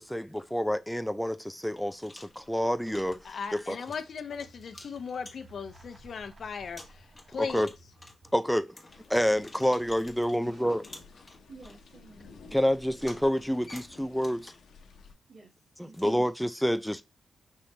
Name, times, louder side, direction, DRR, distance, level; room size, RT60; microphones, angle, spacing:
voice 1, 0.0-3.2 3.5-3.8 7.4-7.7 8.3-8.7 9.1-10.8 12.5-14.5 16.0-17.0, equal, ahead, 0.4 m, -28 dB
sound 1, 1.0-1.1 1.6-5.7 6.2-6.3 6.7-10.4 10.8-11.8 12.9-14.8 15.9-16.1, left 2 dB, 20° left, 1.4 m, -51 dB
sound 2, 2.0-8.5 11.2-13.2, right 1 dB, 30° right, 0.9 m, -56 dB
voice 2, 3.2-7.6, left 6 dB, 60° left, 0.6 m, -38 dB
sound 3, 8.9-15.1, left 5 dB, 85° left, 0.8 m, -53 dB
voice 3, 11.5-12.3 15.3-16.3, right 3 dB, 70° right, 1.7 m, -53 dB
5.5 x 2.9 x 3.3 m
cardioid pair, 100°, 0 cm